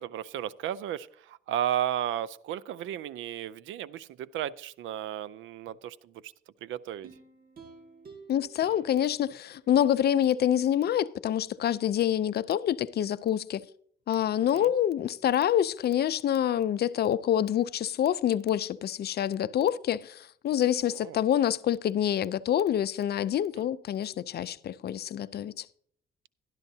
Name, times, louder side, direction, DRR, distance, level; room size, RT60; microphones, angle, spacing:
voice 1, 0.0-6.3 6.6-7.1 14.5-14.7 20.8-21.2 23.6-23.7, right 11 dB, 80° right, 0.4 m, -34 dB
sound 1, 7.0-10.3 10.8-10.9, right 4 dB, 50° right, 1.9 m, -52 dB
voice 2, 8.3-13.6 14.1-25.7, left 10 dB, 55° left, 0.5 m, -27 dB
12.0 x 11.5 x 2.7 m
cardioid pair, 90°, 20 cm